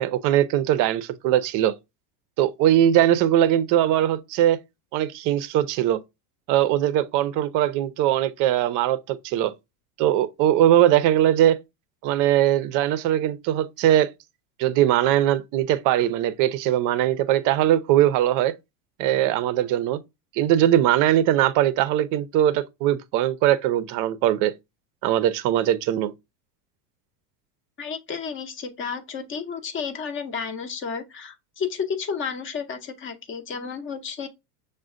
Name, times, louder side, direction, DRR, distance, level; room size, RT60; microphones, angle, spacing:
voice 1, 0.0-1.7 2.4-4.6 4.9-6.0 6.5-9.5 10.0-11.6 12.0-14.1 14.6-18.5 19.0-20.0 20.3-24.5 25.0-26.1, right 12 dB, 45° right, 0.5 m, -21 dB
voice 2, 27.8-34.3, left 6 dB, 25° left, 0.6 m, -32 dB
6.1 x 2.1 x 2.4 m
supercardioid pair, 110°, 46 cm